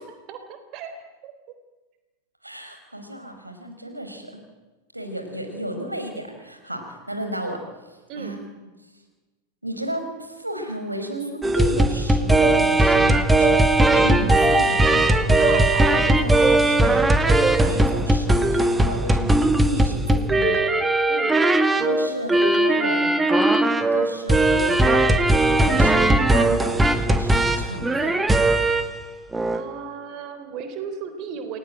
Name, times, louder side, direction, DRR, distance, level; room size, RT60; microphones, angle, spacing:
voice 1, 0.3-0.9 1.2-1.3 8.1-8.4 15.4-15.9 21.1-21.6 29.5-31.6, right 7 dB, 40° right, 8 dB, 3.7 m, -35 dB
voice 2, 2.4-4.3 4.9-8.4 9.6-20.6 21.7-23.1 23.8-25.1 25.5-28.2, right 1 dB, 85° right, 5 dB, 4.9 m, -33 dB
sound 1, 11.4-29.0 29.3-29.6, right 1 dB, 10° right, 2.1 m, -19 dB
29.0 x 21.5 x 9.1 m, 1.2 s
figure-of-eight pair, 90°, 0 cm